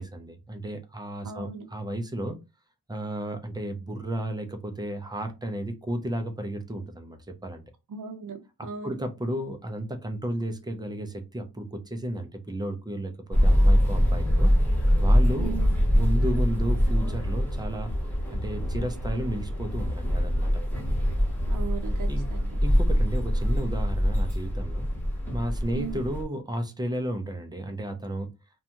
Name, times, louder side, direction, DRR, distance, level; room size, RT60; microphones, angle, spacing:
voice 1, 0.0-2.4 2.9-7.6 8.8-14.5 15.0-15.6 15.9-17.9 18.3-20.6 22.1-22.3 22.6-24.9 25.3-28.3, right 1 dB, 10° right, 5 dB, 0.3 m, -33 dB
voice 2, 1.2-1.7 7.9-9.0 15.4-15.7 21.5-22.6 25.7-26.0, right 6 dB, 50° right, 5 dB, 0.7 m, -37 dB
sound 1, 13.3-26.2, equal, 5° left, 0.8 m, -24 dB
2.5 x 2.2 x 2.8 m, 0.25 s
wide cardioid pair, 155°, 40 cm